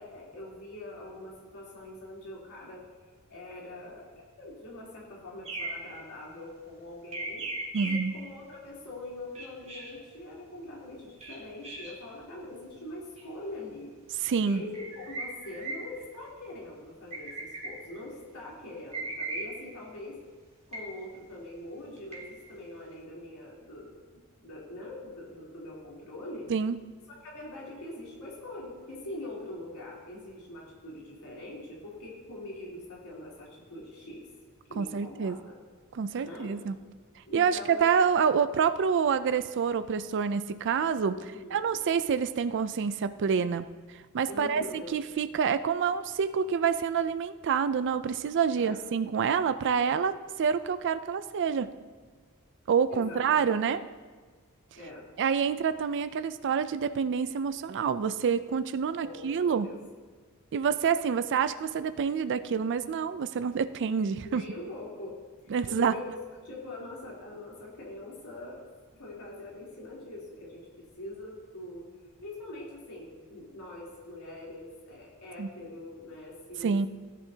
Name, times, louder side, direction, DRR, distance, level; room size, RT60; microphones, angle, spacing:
voice 1, 0.0-2.8 3.3-4.1 4.4-7.4 7.8-13.9 14.4-20.2 20.7-23.9 24.4-26.5 27.1-34.2 34.7-35.6 36.1-36.5 37.3-37.9 41.2-41.8 44.3-44.9 48.5-48.8 52.9-53.6 54.8-55.0 59.0-59.3 59.6-59.8 64.3-65.1 65.5-66.2 66.4-68.7 69.0-70.7 71.0-71.9 72.2-76.7, left 1 dB, 90° left, -5 dB, 3.3 m, -43 dB
sound 1, 5.4-6.0 7.1-8.3 9.3-10.0 11.2-12.0 13.2-13.3 14.5-16.1 17.1-18.0 18.9-19.8 20.7-21.1 22.0-22.5, right 2 dB, 30° right, 1.7 m, -38 dB
voice 2, 7.7-8.1 14.1-14.6 26.5-26.8 34.8-35.4 35.9-36.7 37.3-41.2 41.5-43.7 43.9-51.7 52.7-53.8 55.2-59.7 60.5-64.4 65.5-65.9 75.4-75.5 76.6-76.9, right 6 dB, 55° right, 12 dB, 0.4 m, -27 dB
17.0 x 11.0 x 2.8 m, 1.5 s
head